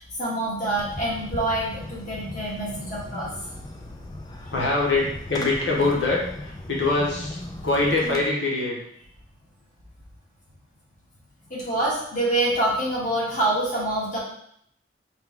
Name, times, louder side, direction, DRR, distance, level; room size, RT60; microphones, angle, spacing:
voice 1, 0.0-3.6 11.5-14.2, right 1 dB, 45° left, -7 dB, 1.6 m, -26 dB
Fireworks, 0.8-8.2, left 1 dB, 20° left, 0.4 m, -37 dB
voice 2, 4.5-8.8, left 2 dB, 90° left, -4 dB, 1.1 m, -24 dB
4.6 x 2.3 x 3.6 m, 0.71 s
head